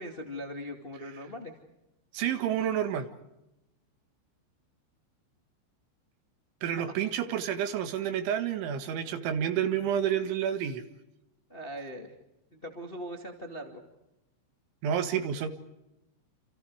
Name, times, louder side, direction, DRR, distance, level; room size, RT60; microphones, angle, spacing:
voice 1, 0.0-1.6 11.5-12.1 12.5-13.8, equal, 55° left, 3 dB, 0.6 m, -40 dB
voice 2, 2.1-3.1 6.6-10.8 14.8-15.5, right 9 dB, 75° right, 9 dB, 4.0 m, -29 dB
28.5 x 28.5 x 4.8 m, 0.92 s
omnidirectional pair, 5.7 m